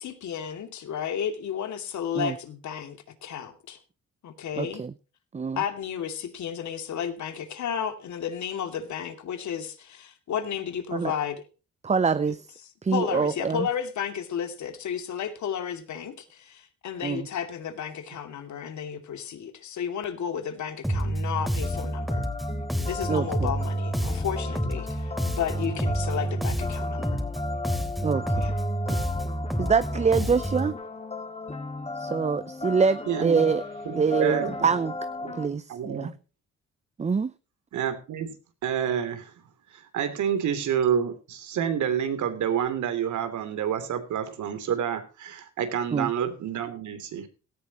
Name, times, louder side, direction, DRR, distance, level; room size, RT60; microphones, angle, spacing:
voice 1, 0.0-3.8 4.2-4.8 5.6-11.4 12.9-22.3 22.8-27.2 28.4-28.5, left 8 dB, 70° left, 2.5 m, -33 dB
voice 2, 4.6-4.9 5.3-5.6 10.9-11.1 11.8-12.5 12.8-13.7 17.0-17.3 23.1-23.5 28.0-28.5 29.6-30.7 32.0-33.6 33.9-34.9 35.3-36.1 37.0-37.3 45.9-46.1, right 5 dB, 20° right, 0.6 m, -25 dB
Bass guitar, 20.8-30.7, right 1 dB, ahead, 3.2 m, -29 dB
sound 1, 21.6-35.5, left 3 dB, 20° left, 2.7 m, -36 dB
voice 3, 33.1-33.4 33.8-34.6 35.2-35.3 35.7-36.1 37.7-38.3 38.6-39.3 39.7-47.3, right 8 dB, 75° right, 3.0 m, -28 dB
17.0 x 14.0 x 3.0 m
cardioid pair, 90°, 30 cm